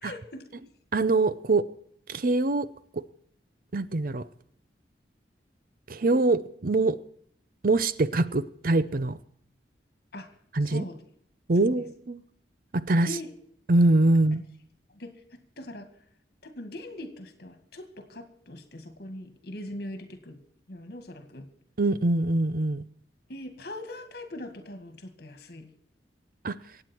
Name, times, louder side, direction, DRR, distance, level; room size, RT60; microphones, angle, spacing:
voice 1, 0.0-0.5 10.1-10.3 10.6-11.0 11.6-11.7 13.0-13.3 14.9-15.9 16.4-20.4 20.7-21.5 23.3-25.7, left 1 dB, 60° left, 2.1 m, -41 dB
voice 2, 0.9-1.7 2.1-2.7 2.9-3.0 3.7-4.2 5.9-7.0 7.6-9.2 10.5-10.8 11.5-12.2 12.7-13.1 13.7-14.4 21.8-22.8 26.4-26.6, right 2 dB, 50° right, 0.6 m, -23 dB
24.5 x 8.9 x 4.5 m
head